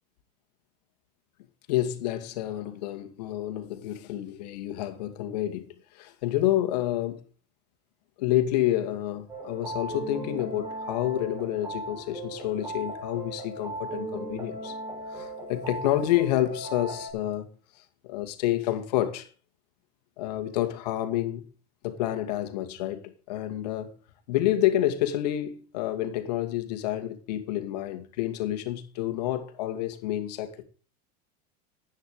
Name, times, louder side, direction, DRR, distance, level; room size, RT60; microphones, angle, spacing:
voice 1, 1.7-5.7 5.9-7.2 8.2-14.8 15.1-17.5 18.0-19.3 20.2-21.5 21.8-23.9 24.3-30.6, left 13 dB, 80° left, 2.4 m, -29 dB
sound 1, 9.3-17.1, right 2 dB, 15° right, 4.7 m, -37 dB
11.0 x 9.3 x 5.0 m
supercardioid pair, 120°, 21 cm